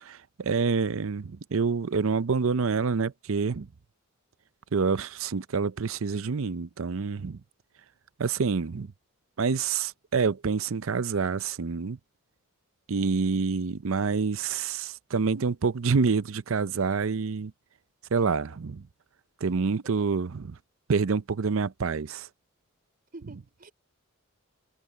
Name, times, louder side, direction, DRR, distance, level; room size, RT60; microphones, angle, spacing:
voice 1, 0.1-3.7 4.7-7.4 8.2-8.9 9.4-12.0 12.9-17.5 18.1-18.8 19.4-20.5 20.9-22.3, right 5 dB, 65° right, 0.6 m, -27 dB
voice 2, 18.1-18.6 19.8-20.1 23.1-23.7, right 2 dB, 40° right, 4.7 m, -49 dB
head